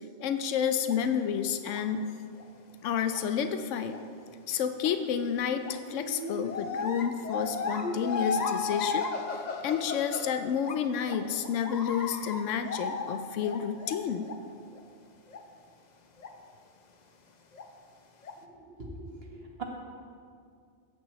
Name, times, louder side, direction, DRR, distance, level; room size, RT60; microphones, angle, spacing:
voice 1, 0.2-2.0 2.8-4.0 4.5-14.3, left 8 dB, 90° left, 8 dB, 0.9 m, -30 dB
sound 1, 0.9-1.0 1.7-1.9 2.4-2.5 3.1-3.2 3.9-4.0 4.8-4.9 5.6-10.8 11.1-14.4 14.7-14.8 15.3-15.4 16.2-16.3 17.5-17.6 18.2-18.3, left 4 dB, 45° left, 0.7 m, -35 dB
voice 2, 18.8-19.6, right 3 dB, 55° right, -1 dB, 1.6 m, -41 dB
15.0 x 9.6 x 3.1 m, 2.3 s
omnidirectional pair, 1.2 m